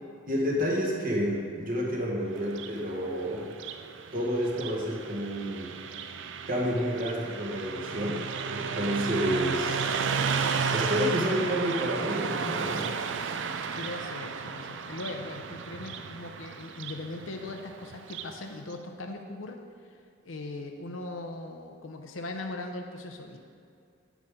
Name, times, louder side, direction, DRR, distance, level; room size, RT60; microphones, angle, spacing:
voice 1, 0.3-3.5 4.1-5.7 6.5-9.9 10.7-12.9, equal, 45° right, -2 dB, 1.5 m, -30 dB
Car passing by, 2.4-18.4, right 5 dB, 65° right, 0.4 m, -33 dB
voice 2, 13.7-19.6 20.2-23.4, left 2 dB, 80° left, 3 dB, 0.7 m, -39 dB
8.3 x 8.2 x 3.7 m, 2.3 s
head